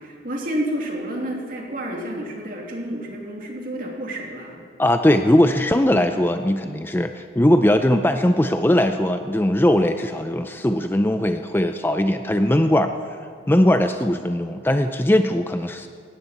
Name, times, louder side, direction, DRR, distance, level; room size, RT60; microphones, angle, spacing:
voice 1, 0.0-4.7, right 1 dB, 50° right, 0 dB, 2.5 m, -30 dB
voice 2, 4.8-12.9 13.5-15.9, left 1 dB, 10° left, 8 dB, 0.4 m, -19 dB
17.5 x 16.5 x 4.2 m, 2.3 s
head